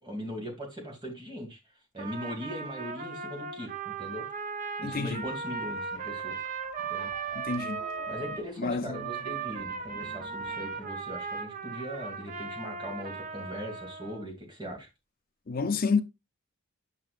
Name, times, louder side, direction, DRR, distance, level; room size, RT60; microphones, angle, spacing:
voice 1, 0.0-1.6 1.9-4.3 4.8-6.4 6.9-7.1 8.1-14.9, equal, 20° right, 2.1 m, -39 dB
Trumpet, 2.0-8.4 8.9-14.2, right 5 dB, 40° right, 0.7 m, -37 dB
voice 2, 4.8-5.2 7.4-7.8 8.6-9.0 15.5-16.0, left 4 dB, 45° left, 0.6 m, -29 dB
sound 1, 4.9-11.6, left 1 dB, 20° left, 2.3 m, -51 dB
8.4 x 5.7 x 2.4 m
head